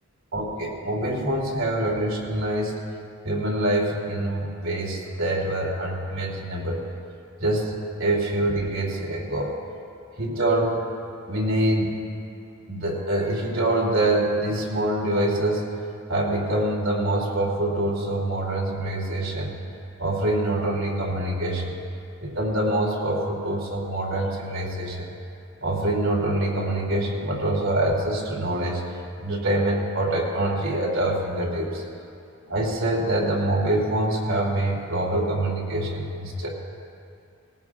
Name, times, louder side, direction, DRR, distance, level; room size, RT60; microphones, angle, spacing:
voice 1, 0.3-2.7 3.2-6.8 7.4-9.6 10.2-10.8 11.3-11.9 12.7-15.7 16.1-19.5 20.0-21.8 22.2-25.1 25.6-28.8 29.2-31.8 32.5-36.5, right 1 dB, 75° right, -3 dB, 2.9 m, -25 dB
19.0 x 18.5 x 2.5 m, 2.4 s
head